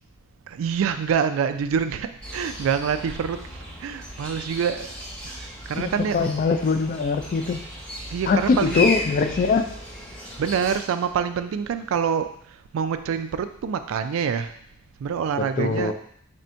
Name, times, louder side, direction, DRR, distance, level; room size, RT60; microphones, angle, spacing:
voice 1, 0.5-4.9 5.2-6.3 8.1-8.9 10.4-12.3 12.7-14.5 15.0-15.9, right 7 dB, 75° right, 10 dB, 0.3 m, -26 dB
sound 1, 2.2-10.8, left 1 dB, 5° left, 0.7 m, -34 dB
voice 2, 5.8-7.6 8.3-9.7 15.4-15.9, left 4 dB, 45° left, 7 dB, 0.3 m, -22 dB
3.5 x 2.6 x 4.3 m, 0.65 s
head